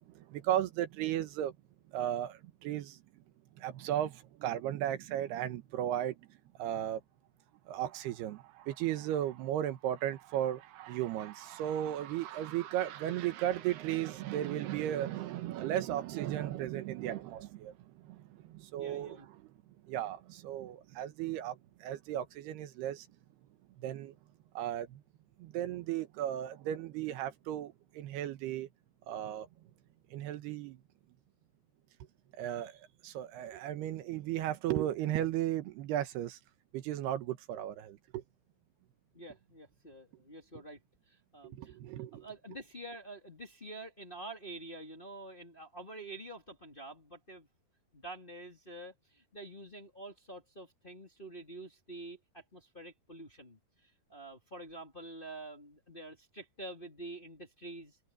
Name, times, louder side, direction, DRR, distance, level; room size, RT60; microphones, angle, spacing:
voice 1, 0.1-1.5 1.9-3.0 3.6-7.0 7.7-19.3 19.8-23.1 23.8-24.1 24.5-25.0 25.4-28.7 29.1-29.5 30.1-30.8 32.4-32.8 33.0-36.4 36.7-38.2 41.5-42.3, right 12 dB, 80° right, 3.2 m, -35 dB
voice 2, 18.8-19.3 39.1-40.8 41.1-41.8 42.1-47.5 47.9-58.0, right 2 dB, 15° left, 2.2 m, -47 dB
omnidirectional pair, 4.7 m